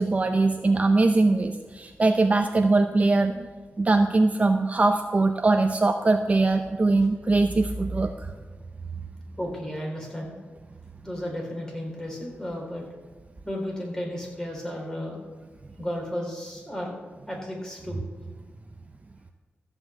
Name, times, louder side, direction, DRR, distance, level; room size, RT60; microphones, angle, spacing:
voice 1, 0.0-3.5 3.8-8.1, right 3 dB, 35° right, 6 dB, 0.6 m, -21 dB
voice 2, 9.4-10.4 11.0-12.8 13.4-15.2 15.8-16.9 17.3-18.0, equal, 15° left, -1 dB, 3.8 m, -33 dB
13.5 x 5.8 x 8.1 m, 1.3 s
wide cardioid pair, 105°, 4 cm